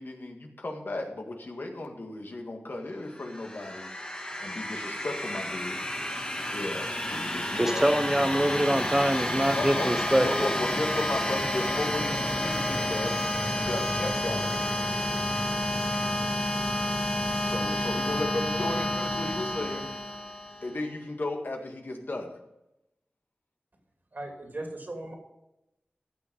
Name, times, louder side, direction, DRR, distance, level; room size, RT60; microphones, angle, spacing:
voice 1, 0.0-3.9 4.4-5.8 6.5-7.9 9.5-13.2 13.6-14.7 17.4-19.9 20.6-22.4, left 2 dB, 65° left, 3 dB, 1.8 m, -35 dB
sound 1, 3.1-20.8, left 1 dB, 25° left, 1.6 m, -30 dB
voice 2, 7.5-10.5, right 1 dB, 10° right, 6 dB, 0.7 m, -25 dB
voice 3, 24.1-25.1, right 2 dB, 60° right, 1 dB, 3.0 m, -38 dB
15.0 x 6.3 x 5.5 m, 0.90 s
wide cardioid pair, 60°, 4 cm